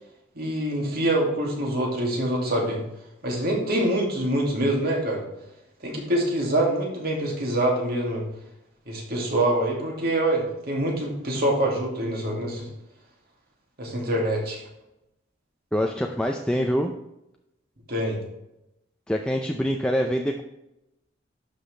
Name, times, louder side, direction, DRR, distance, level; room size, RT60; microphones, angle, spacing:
voice 1, 0.4-2.8 3.2-5.2 5.8-8.2 8.9-12.7 13.8-14.6 17.9-18.2, right 1 dB, 55° right, -1 dB, 2.4 m, -25 dB
voice 2, 15.7-16.9 19.1-20.4, equal, 5° left, 2 dB, 0.5 m, -25 dB
11.5 x 5.8 x 3.3 m, 0.88 s
head